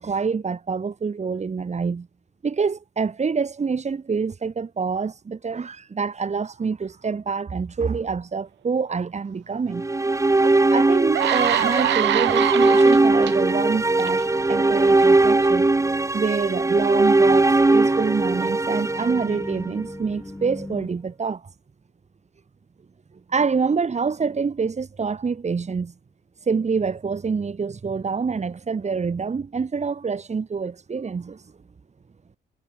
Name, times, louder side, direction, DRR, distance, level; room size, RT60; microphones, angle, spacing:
voice 1, 0.0-2.1 2.4-9.9 10.7-15.7 16.1-21.4 23.3-25.9 26.5-31.4, right 5 dB, 35° right, 4.3 m, -26 dB
sound 1, 9.7-19.9, right 2 dB, 15° right, 1.4 m, -19 dB
sound 2, 10.4-10.5 10.9-13.3 14.0-14.2, right 13 dB, 65° right, 0.7 m, -24 dB
sound 3, 11.4-20.9, left 2 dB, 10° left, 5.0 m, -42 dB
cardioid pair, 90°, 20 cm